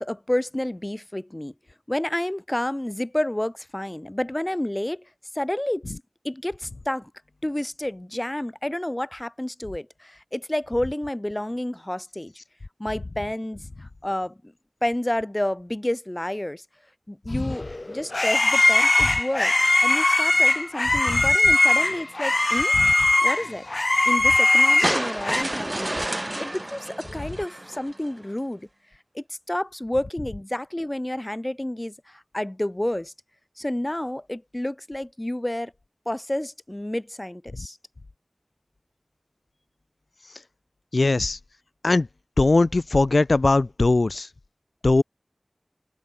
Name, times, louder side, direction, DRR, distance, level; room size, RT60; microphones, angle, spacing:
voice 1, 0.0-1.5 1.9-5.1 5.3-5.9 6.2-7.1 7.4-12.3 12.8-14.5 14.8-16.6 17.1-19.5 19.8-22.8 23.2-23.7 24.0-26.0 26.4-28.7 29.1-33.1 33.6-35.7 36.1-37.8, left 1 dB, 25° left, 4.4 m, -30 dB
sound 1, 17.5-25.4, left 2 dB, 50° left, 3.5 m, -20 dB
sound 2, 24.8-28.1, right 1 dB, 30° right, 1.9 m, -30 dB
voice 2, 40.9-41.4 41.8-42.1 42.4-44.3 44.8-45.0, left 2 dB, 80° left, 1.6 m, -20 dB
open air
wide cardioid pair, 55°, 0 cm